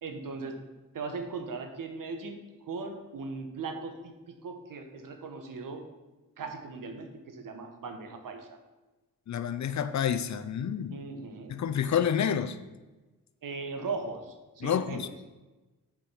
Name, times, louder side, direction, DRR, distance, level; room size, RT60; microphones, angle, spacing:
voice 1, 0.0-0.6 0.9-2.4 2.6-5.9 6.4-8.6 10.9-11.6 13.4-15.1, right 4 dB, 75° right, 5 dB, 1.2 m, -38 dB
voice 2, 9.3-11.0 11.5-12.6 14.6-15.1, left 8 dB, 55° left, 12 dB, 0.6 m, -29 dB
7.2 x 5.1 x 5.7 m, 1.2 s
cardioid pair, 70°, 33 cm